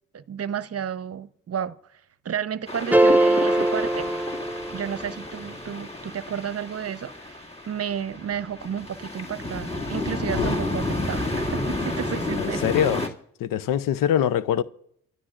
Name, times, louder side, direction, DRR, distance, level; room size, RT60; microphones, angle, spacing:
voice 1, 0.1-4.1 4.7-12.6, right 8 dB, 45° right, 0.8 m, -32 dB
sound 1, 2.7-13.1, left 2 dB, 20° left, 2.2 m, -31 dB
sound 2, 2.9-5.2, right 1 dB, 5° right, 0.4 m, -21 dB
voice 2, 12.4-13.0 13.4-14.6, left 10 dB, 75° left, 0.6 m, -23 dB
27.0 x 12.5 x 2.5 m
supercardioid pair, 50°, 33 cm